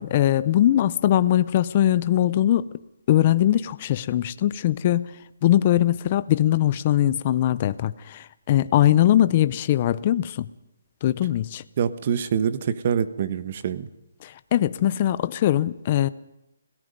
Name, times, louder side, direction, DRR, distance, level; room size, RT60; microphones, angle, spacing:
voice 1, 0.0-2.7 3.1-5.1 5.4-10.5 11.0-11.6 14.2-16.1, left 12 dB, 30° left, 14 dB, 0.7 m, -21 dB
voice 2, 11.8-13.9, right 8 dB, 35° right, 13 dB, 1.3 m, -25 dB
27.0 x 18.0 x 5.3 m, 0.88 s
hypercardioid pair, 170°, 0 cm